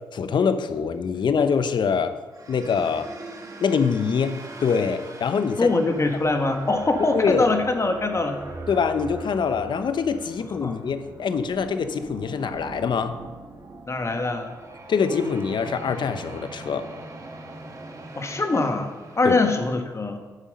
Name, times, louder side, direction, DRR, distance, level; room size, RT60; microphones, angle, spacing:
voice 1, 0.1-2.2 2.5-3.1 3.6-5.7 7.1-7.5 8.7-13.2 14.9-16.9 19.2-19.3, left 6 dB, 60° left, 10 dB, 0.8 m, -24 dB
sound 1, 2.3-19.3, right 2 dB, 40° right, 1.8 m, -41 dB
voice 2, 5.6-8.4 10.6-10.8 13.9-14.5 18.2-20.2, left 3 dB, 35° left, 5 dB, 1.7 m, -23 dB
9.1 x 7.5 x 5.4 m, 1.3 s
supercardioid pair, 45°, 9 cm